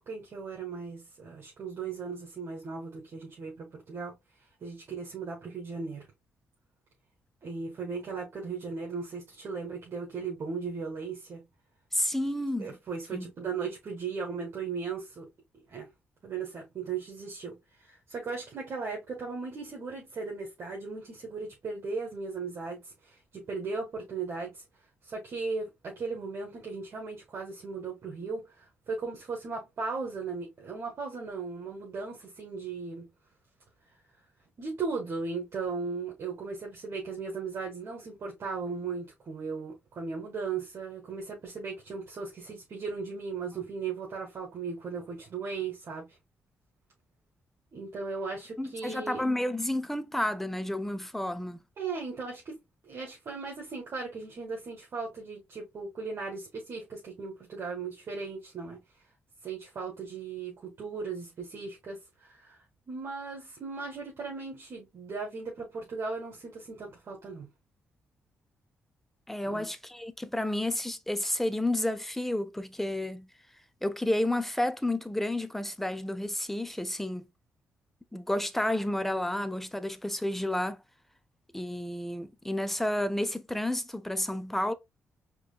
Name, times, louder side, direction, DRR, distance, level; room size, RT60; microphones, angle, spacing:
voice 1, 0.0-4.1 4.6-6.0 7.4-11.4 12.6-15.3 15.7-15.9 16.2-24.6 25.0-33.1 34.6-46.1 47.7-49.2 51.8-52.6 52.8-58.8 59.4-62.6 62.9-67.5 69.4-69.7, right 4 dB, 55° right, 1.4 m, -37 dB
voice 2, 11.9-12.8 13.1-13.3 48.6-51.6 69.3-73.3 73.8-77.3 78.1-80.8 81.5-84.7, left 1 dB, 5° left, 0.5 m, -31 dB
4.8 x 3.0 x 2.3 m
cardioid pair, 95°, 5 cm